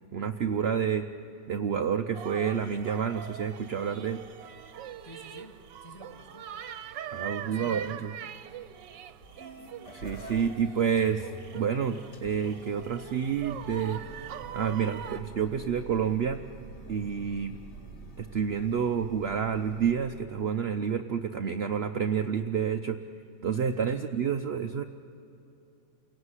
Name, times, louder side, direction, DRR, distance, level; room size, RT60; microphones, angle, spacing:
voice 1, 0.1-1.1 1.5-4.2 7.1-8.1 9.9-14.0 14.5-16.4 16.9-17.6 18.2-23.0 23.4-24.8, right 7 dB, 60° right, 6 dB, 0.6 m, -29 dB
sound 1, 2.1-15.2, right 9 dB, 90° right, 1.5 m, -43 dB
voice 2, 5.0-6.5 7.4-8.1 23.9-24.1, equal, 10° left, 4 dB, 2.0 m, -49 dB
sound 2, 9.1-20.0, right 2 dB, 65° left, 3.0 m, -47 dB
28.0 x 17.5 x 9.8 m, 2.9 s
omnidirectional pair, 1.9 m